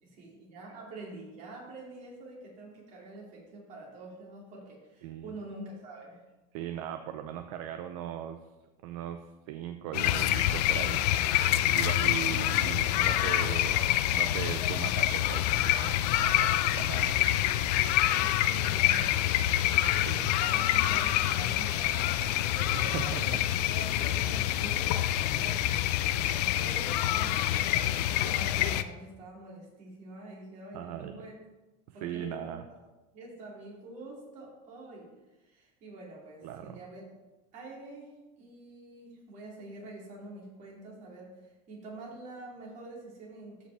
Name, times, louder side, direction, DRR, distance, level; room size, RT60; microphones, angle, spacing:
voice 1, 0.0-6.2 17.0-17.2 18.0-23.3 23.7-25.9 26.1-31.3 31.9-32.6 33.1-35.1 35.4-37.0 37.5-43.7, right 2 dB, 40° right, -3 dB, 2.7 m, -46 dB
voice 2, 5.0-5.3 6.5-8.4 8.8-11.0 11.7-17.1 17.7-18.0 19.6-20.3 22.7-23.4 25.3-25.4 30.7-31.1 31.9-32.6 36.4-36.8, right 10 dB, 65° right, 7 dB, 0.6 m, -39 dB
sound 1, 9.9-28.8, left 13 dB, 90° left, 0.5 m, -27 dB
13.0 x 5.1 x 3.4 m, 1.1 s
cardioid pair, 170°, 20 cm